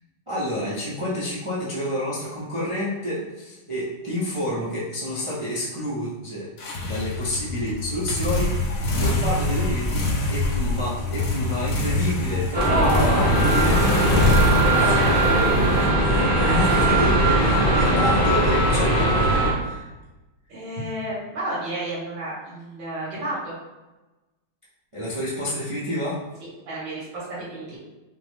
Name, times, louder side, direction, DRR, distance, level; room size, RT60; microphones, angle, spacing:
voice 1, 0.3-6.5 6.8-14.1 14.5-15.0 15.8-19.9 24.9-26.2, equal, 50° right, -9 dB, 0.3 m, -29 dB
sound 1, 6.6-16.4, left 2 dB, 65° left, 0.9 m, -25 dB
sound 2, 12.5-19.5, right 1 dB, 15° right, 0.7 m, -19 dB
voice 2, 12.6-13.2 14.1-15.6 16.4-16.8 17.5-18.0 20.5-23.5 26.7-27.8, right 1 dB, 80° right, -9 dB, 2.4 m, -30 dB
5.5 x 2.1 x 3.3 m, 1.1 s
omnidirectional pair, 2.1 m